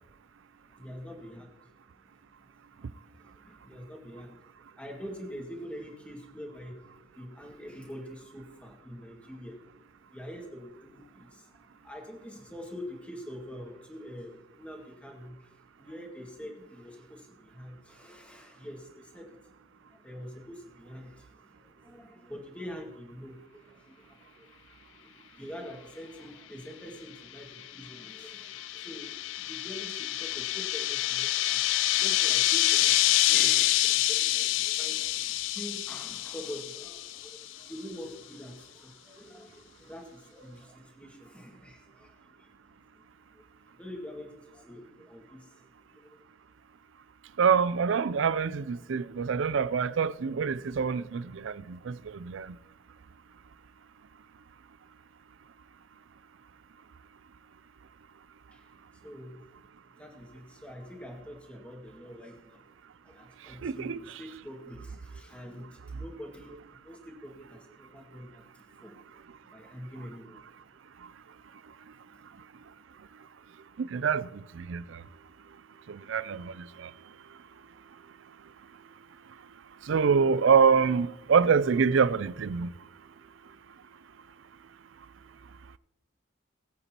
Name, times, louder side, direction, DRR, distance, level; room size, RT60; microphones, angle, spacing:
voice 1, 0.7-1.6 1.9-2.1 2.4-4.4 4.8-6.8 7.2-9.7 10.1-19.6 19.9-24.5 24.8-42.6 42.9-43.4 43.7-46.2 58.5-59.4 59.9-62.6 63.0-68.9 69.5-70.4, equal, 5° left, 1.9 m, -45 dB
sound 1, 27.6-37.4, left 15 dB, 65° left, 0.4 m, -27 dB
voice 2, 47.4-52.5 63.6-64.0 73.8-75.0 75.9-76.9 79.8-82.7, right 6 dB, 65° right, 0.4 m, -26 dB
21.0 x 8.1 x 2.9 m
head